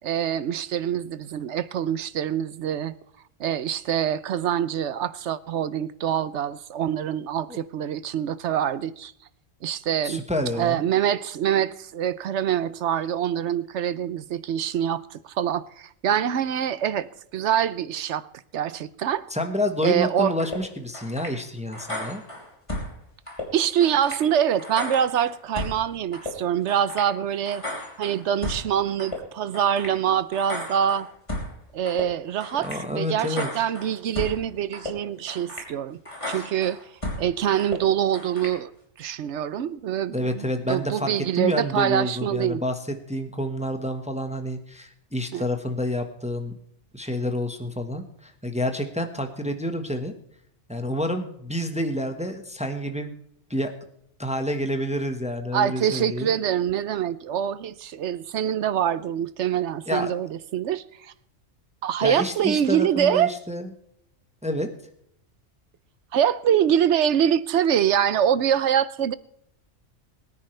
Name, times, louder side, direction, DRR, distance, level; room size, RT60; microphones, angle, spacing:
voice 1, 0.0-2.9 3.4-9.1 9.6-10.2 10.6-18.3 18.5-19.3 19.8-20.3 23.5-27.6 28.0-31.1 31.7-36.0 36.3-36.8 37.2-38.7 39.0-42.6 45.3-45.5 55.5-61.1 61.8-63.3 66.1-69.1, right 9 dB, 70° right, 0.9 m, -25 dB
voice 2, 10.0-10.8 19.3-22.2 32.6-33.5 36.3-36.5 40.1-42.7 43.1-46.5 46.9-50.1 50.7-53.1 53.5-53.7 54.2-56.3 59.9-60.1 62.0-63.7 64.4-64.7, equal, 5° right, 1.2 m, -28 dB
sound 1, 20.4-20.6 20.9-21.4 21.7-22.9 23.3-23.4 23.8-24.2 24.6-25.8 26.1-26.3 26.7-27.1 27.5-28.6 29.0-29.2 29.5-30.0 30.3-31.5 31.9-32.0 32.4-32.8 33.2-34.4 34.7-34.9 35.3-35.7 36.0-37.2 37.6-37.8 38.1-38.6, left 1 dB, 25° left, 3.3 m, -34 dB
22.0 x 9.8 x 3.3 m
omnidirectional pair, 1.3 m